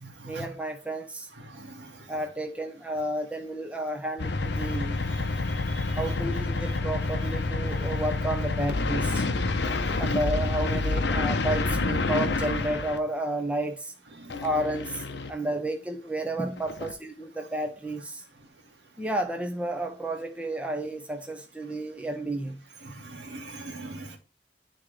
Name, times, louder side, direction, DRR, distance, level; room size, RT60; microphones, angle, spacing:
voice 1, 0.2-1.3 2.1-5.0 6.0-9.2 10.0-13.9 14.4-15.0 15.3-18.2 19.0-22.6, right 1 dB, 5° right, 0.9 m, -31 dB
voice 2, 1.5-1.9 5.8-6.0 14.2-14.3 22.8-24.2, right 2 dB, 75° right, 1.9 m, -41 dB
sound 1, 4.2-13.0 14.3-15.3 16.6-16.9, left 3 dB, 70° left, 0.7 m, -28 dB
10.5 x 3.7 x 3.3 m
head